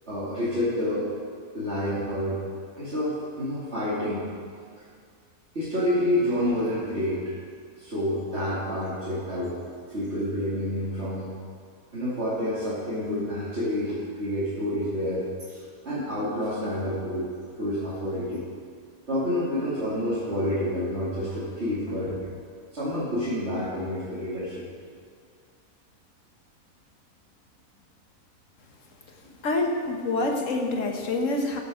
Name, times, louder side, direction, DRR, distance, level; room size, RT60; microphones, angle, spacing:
voice 1, 0.1-1.1 1.5-2.4 2.7-4.2 5.5-7.3 7.8-9.6 9.9-11.3 11.9-17.3 17.6-18.4 19.1-22.3 22.7-24.6, left 1 dB, 45° right, -12 dB, 2.9 m, -28 dB
voice 2, 29.4-31.6, left 2 dB, 55° left, 2 dB, 1.5 m, -26 dB
14.0 x 6.7 x 5.1 m, 2.1 s
omnidirectional pair, 1.6 m